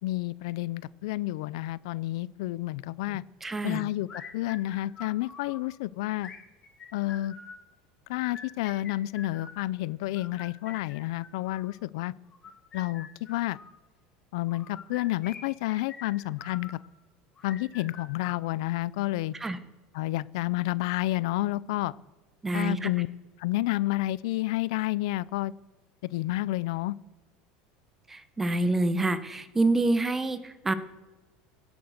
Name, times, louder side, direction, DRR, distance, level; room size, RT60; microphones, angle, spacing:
voice 1, 0.0-3.2 3.6-6.3 6.9-7.3 8.1-12.1 12.7-13.6 14.3-16.8 17.4-19.3 19.9-21.9 22.5-23.1 23.4-25.5 26.1-27.0, left 17 dB, 75° left, 20 dB, 0.5 m, -30 dB
voice 2, 3.4-3.8 19.4-19.6 22.4-22.9 28.1-30.7, right 2 dB, 10° right, 13 dB, 1.0 m, -27 dB
sound 1, 4.1-5.6 6.2-7.6 8.1-9.7 10.2-11.7 12.3-13.7 14.5-16.8 17.4-18.8, left 5 dB, 25° left, 3.0 m, -46 dB
16.5 x 9.9 x 6.6 m, 1.3 s
supercardioid pair, 150°, 3 cm